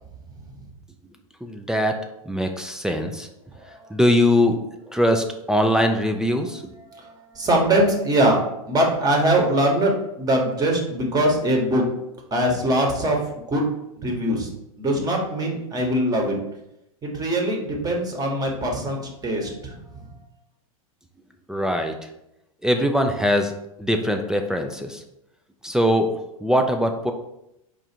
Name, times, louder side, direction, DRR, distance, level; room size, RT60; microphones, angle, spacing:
voice 1, 1.4-2.0 2.3-3.3 3.9-4.6 4.9-6.6 21.5-22.0 22.6-23.5 23.8-25.0 25.6-26.1 26.4-27.1, equal, 5° right, 5 dB, 0.3 m, -21 dB
voice 2, 6.9-9.9 10.2-11.9 12.3-13.2 13.5-13.7 14.0-14.5 14.8-16.4 17.0-20.0, right 1 dB, 20° right, 0 dB, 1.1 m, -22 dB
4.8 x 2.5 x 4.2 m, 0.85 s
hypercardioid pair, 110°, 19 cm